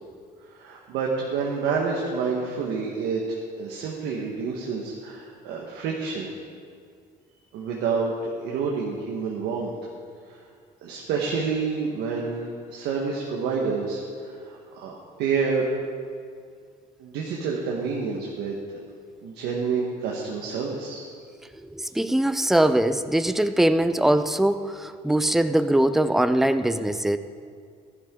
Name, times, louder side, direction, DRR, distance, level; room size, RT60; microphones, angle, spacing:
voice 1, 0.5-6.3 7.5-9.7 10.3-10.4 10.8-15.7 17.0-18.5 19.2-21.0, right 5 dB, 85° right, -2 dB, 1.4 m, -28 dB
voice 2, 21.6-27.2, right 1 dB, ahead, 10 dB, 0.4 m, -22 dB
14.5 x 11.5 x 3.8 m, 2.2 s
cardioid pair, 110°, 17 cm